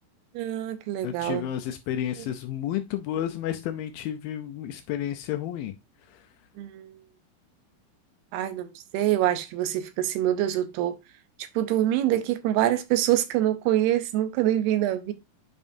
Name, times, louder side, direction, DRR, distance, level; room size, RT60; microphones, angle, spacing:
voice 1, 0.3-1.5 2.2-2.3 6.6-6.9 8.3-11.0 11.4-15.1, right 12 dB, 85° right, 2.8 m, -25 dB
voice 2, 1.0-5.7, left 11 dB, 80° left, 2.2 m, -31 dB
8.3 x 5.3 x 2.6 m
omnidirectional pair, 4.5 m